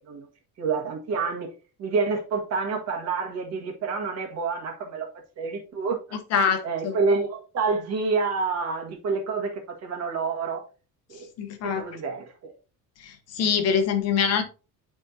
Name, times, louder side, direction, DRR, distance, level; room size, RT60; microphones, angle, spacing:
voice 1, 0.6-1.5 1.8-5.1 5.4-6.0 6.6-10.6 11.1-11.3 11.6-12.5, right 4 dB, 45° right, 1.6 m, -28 dB
voice 2, 6.3-6.9 11.4-11.9 13.0-14.4, left 7 dB, 45° left, 0.9 m, -24 dB
10.5 x 3.7 x 2.7 m
cardioid pair, 170°, 35 cm